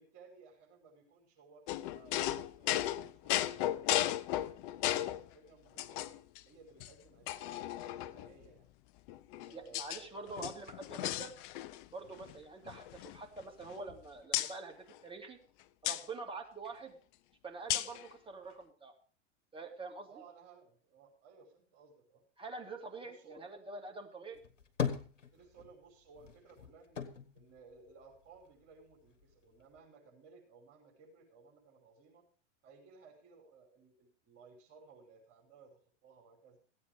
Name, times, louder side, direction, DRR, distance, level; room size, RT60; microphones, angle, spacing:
voice 1, 0.0-1.7 1.9-6.1 6.5-8.7 9.4-10.5 12.2-12.4 16.7-16.8 20.0-22.2 23.0-23.4 25.3-27.0 27.3-32.2 32.6-36.6, right 4 dB, 40° right, 1 dB, 5.8 m, -59 dB
sound 1, 1.7-5.2 5.8-6.4 6.8-6.9 7.3-8.3 9.1-10.0 10.3-11.9 12.1-12.3 12.7-13.9 14.3-14.5 15.8-16.0 17.7-18.0, left 13 dB, 45° left, 0.7 m, -35 dB
voice 2, 9.5-11.3 11.9-15.4 15.8-16.9 17.4-18.9 19.5-20.2 22.4-24.4, right 3 dB, 15° right, 2 dB, 2.4 m, -46 dB
sound 2, 24.3-25.8 26.1-28.5 28.9-29.8, left 7 dB, 80° left, 1.5 m, -39 dB
14.5 x 8.7 x 5.2 m, 0.39 s
figure-of-eight pair, 95°, 36 cm